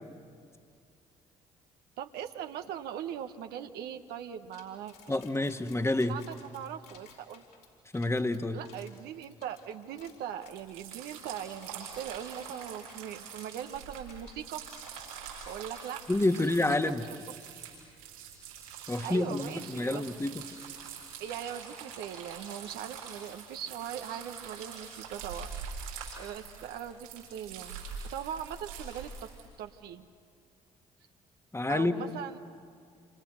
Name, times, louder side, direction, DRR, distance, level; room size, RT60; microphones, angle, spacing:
voice 1, 2.0-5.1 6.1-7.4 8.5-14.6 15.5-16.0 16.4-16.5 16.9-17.2 19.0-20.1 21.2-25.5 26.1-27.8 28.1-29.3 29.6-30.0 31.7-32.4, right 9 dB, 70° right, 7 dB, 1.1 m, -40 dB
sound 1, 4.5-10.7 11.1-11.2 11.6-12.4 12.7-13.0 13.4-15.2 15.5-15.6 16.5-17.0, left 7 dB, 65° left, 5.1 m, -57 dB
voice 2, 5.1-6.2 7.9-8.6 16.1-17.0 18.9-20.4 31.5-32.1, left 2 dB, 15° left, 8 dB, 1.6 m, -28 dB
sound 2, 10.5-29.5, right 6 dB, 85° right, 6.5 m, -44 dB
28.0 x 27.5 x 6.5 m, 2.2 s
hypercardioid pair, 50°, 17 cm